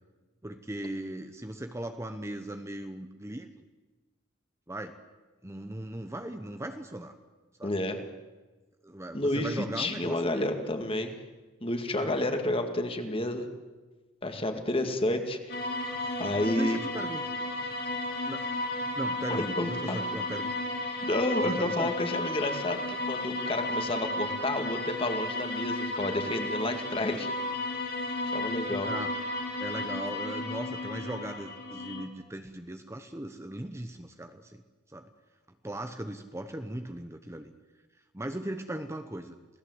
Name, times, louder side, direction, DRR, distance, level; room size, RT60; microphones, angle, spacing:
voice 1, 0.4-3.5 4.7-4.9 5.4-7.1 7.6-7.7 8.8-10.5 12.0-12.2 16.2-17.2 18.2-18.5 18.9-20.5 21.4-21.9 28.7-29.1 29.6-34.6 34.9-35.1 35.6-37.5 38.1-39.4, right 1 dB, 15° right, 7 dB, 1.0 m, -38 dB
voice 2, 7.6-8.0 9.1-11.1 11.6-13.5 14.2-15.6 16.2-16.8 19.3-20.0 21.0-27.3 28.3-28.9, left 1 dB, 30° left, 6 dB, 2.2 m, -30 dB
sound 1, 15.5-32.1, left 1 dB, 50° left, 3.4 m, -33 dB
27.5 x 17.5 x 8.0 m, 1.3 s
head